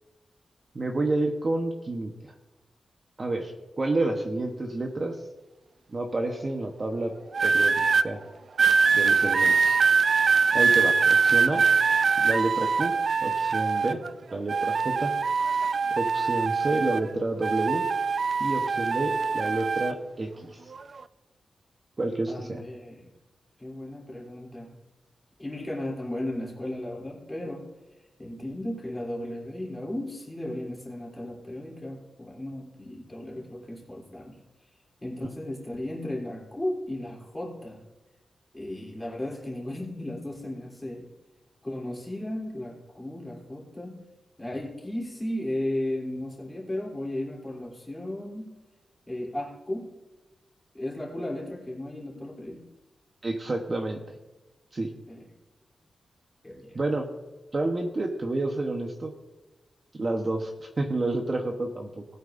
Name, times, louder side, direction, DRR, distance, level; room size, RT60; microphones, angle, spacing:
voice 1, 0.7-2.3 3.2-5.2 5.9-7.1 7.4-8.2 8.9-9.8 10.5-11.7 12.2-13.0 13.2-14.0 14.3-15.1 16.0-17.9 18.4-20.7 22.0-22.6 53.2-54.2 54.7-54.9 56.7-57.1 57.5-59.1 60.0-62.0, right 2 dB, 30° right, 2 dB, 1.0 m, -29 dB
sound 1, 7.3-8.1 8.6-14.1 14.5-17.1 17.4-19.9 20.7-21.0, right 5 dB, 45° right, 0.3 m, -23 dB
voice 2, 22.3-23.1 23.6-24.7 25.4-27.7 28.2-34.4 35.0-37.8 38.5-41.1 41.6-44.0 44.4-48.5 49.1-49.9 50.7-52.6 55.1-55.3 56.4-56.8, left 1 dB, 15° left, -3 dB, 3.1 m, -35 dB
19.0 x 9.1 x 2.6 m, 1.1 s
wide cardioid pair, 155°, 0 cm